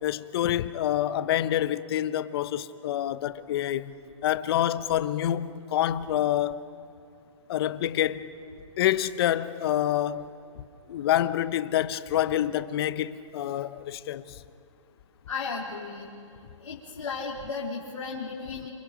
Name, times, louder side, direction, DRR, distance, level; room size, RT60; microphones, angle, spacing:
voice 1, 0.0-3.9 4.2-6.6 7.5-8.3 8.8-10.3 10.9-14.4, left 12 dB, 50° left, 0.9 m, -27 dB
voice 2, 15.3-16.1 16.6-18.7, left 4 dB, 85° left, 3.8 m, -34 dB
27.5 x 27.0 x 5.2 m
hypercardioid pair, 135°, 16 cm